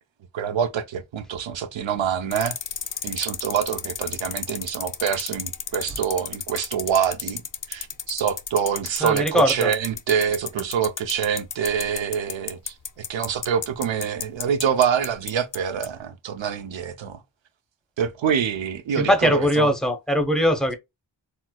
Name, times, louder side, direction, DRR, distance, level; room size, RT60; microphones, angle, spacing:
voice 1, 0.3-2.6 3.0-7.4 7.7-12.7 13.1-17.2 18.0-19.7, right 8 dB, 70° right, 0.7 m, -25 dB
sound 1, 2.3-15.6 15.8-15.9, left 7 dB, 45° left, 0.5 m, -31 dB
voice 2, 9.0-9.7 19.0-20.7, equal, ahead, 0.7 m, -21 dB
4.3 x 2.1 x 2.2 m
wide cardioid pair, 90°, 47 cm